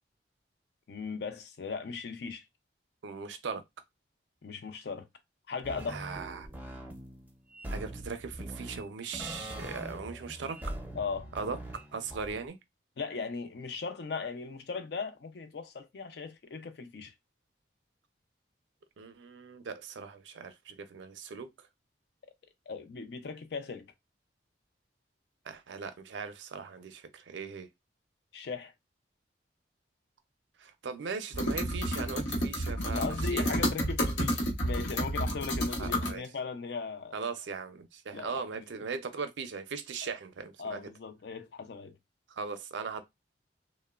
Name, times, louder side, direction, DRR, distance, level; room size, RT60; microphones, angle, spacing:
voice 1, 0.9-2.4 4.4-5.1 5.5-6.0 10.9-11.3 13.0-17.1 22.7-23.9 28.3-28.7 32.8-37.3 38.1-38.8 40.0-40.2 40.6-42.0, left 4 dB, 60° left, 0.4 m, -38 dB
voice 2, 3.0-3.6 5.9-6.5 7.7-10.6 11.3-11.6 11.9-12.6 19.0-21.5 25.5-27.7 30.6-33.6 35.8-36.2 37.1-40.8 42.3-43.0, right 5 dB, 80° right, 0.4 m, -39 dB
sound 1, 5.6-12.5, right 1 dB, 10° right, 0.4 m, -42 dB
sound 2, 31.3-36.1, equal, 80° left, 0.8 m, -30 dB
2.9 x 2.0 x 2.3 m
head